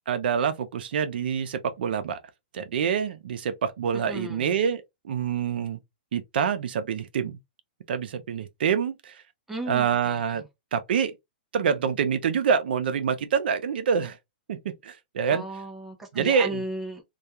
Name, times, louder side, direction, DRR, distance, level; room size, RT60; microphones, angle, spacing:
voice 1, 0.1-2.2 2.5-5.8 6.1-7.4 7.9-9.1 9.7-10.4 10.7-11.1 11.5-14.2 14.5-15.4 16.1-16.6, right 7 dB, 70° right, 0.5 m, -26 dB
voice 2, 3.9-4.6 9.5-10.4 15.3-17.0, right 1 dB, 5° right, 0.5 m, -35 dB
2.3 x 2.2 x 2.8 m
hypercardioid pair, 155°, 6 cm